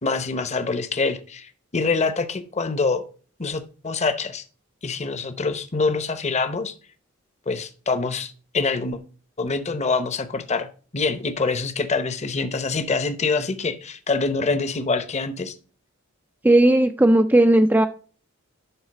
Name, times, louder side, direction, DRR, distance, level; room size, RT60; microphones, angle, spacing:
voice 1, 0.0-3.0 3.4-4.4 4.8-6.7 7.5-9.0 9.4-10.7 10.9-15.5, left 4 dB, 30° left, 0.8 m, -25 dB
voice 2, 16.4-17.9, right 1 dB, 10° right, 0.3 m, -16 dB
11.5 x 4.0 x 4.1 m
head